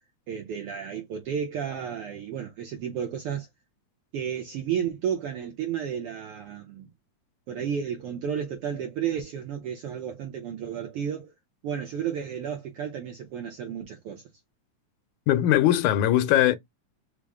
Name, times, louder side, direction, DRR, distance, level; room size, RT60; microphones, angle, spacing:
voice 1, 0.3-3.5 4.1-6.9 7.5-11.3 11.6-14.2, right 8 dB, 75° right, 1.3 m, -32 dB
voice 2, 15.3-16.6, left 12 dB, 85° left, 2.0 m, -20 dB
5.1 x 2.0 x 3.5 m
omnidirectional pair, 3.3 m